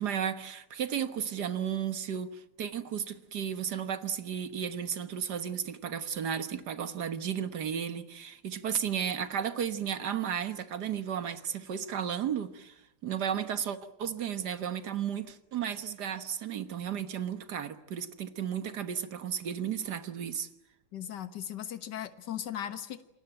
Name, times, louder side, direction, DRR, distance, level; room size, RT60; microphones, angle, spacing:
voice 1, 0.0-12.8 13.0-20.5, right 8 dB, 65° right, 1.9 m, -34 dB
voice 2, 20.9-23.0, left 10 dB, 70° left, 2.0 m, -38 dB
28.0 x 20.5 x 9.1 m
omnidirectional pair, 2.0 m